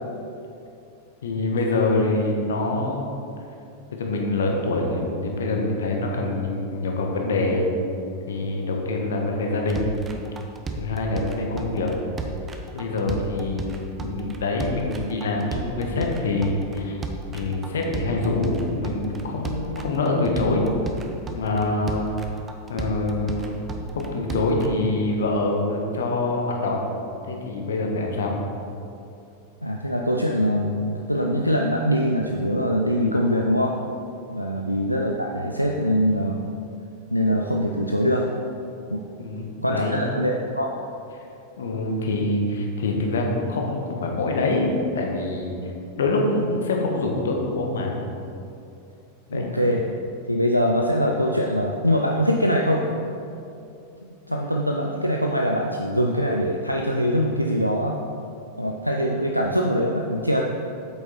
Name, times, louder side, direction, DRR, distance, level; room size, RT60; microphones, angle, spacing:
voice 1, 1.2-3.3 3.9-7.7 8.3-10.0 10.8-11.9 12.7-17.0 17.3-20.7 21.3-22.1 22.7-23.6 23.9-26.9 27.3-28.3 34.5-34.6 39.2-40.1 41.6-45.6 46.0-47.9 49.3-49.5, left 2 dB, 65° left, 1 dB, 1.4 m, -25 dB
sound 1, 9.7-24.7, right 3 dB, 20° right, 0.8 m, -34 dB
voice 2, 29.6-33.8 34.3-36.4 37.1-38.3 38.9-39.1 39.6-40.7 49.3-49.8 50.3-52.9 54.0-58.0 58.6-60.4, equal, 90° left, 0 dB, 0.5 m, -23 dB
8.6 x 7.7 x 4.3 m, 2.6 s
figure-of-eight pair, 90°, 0 cm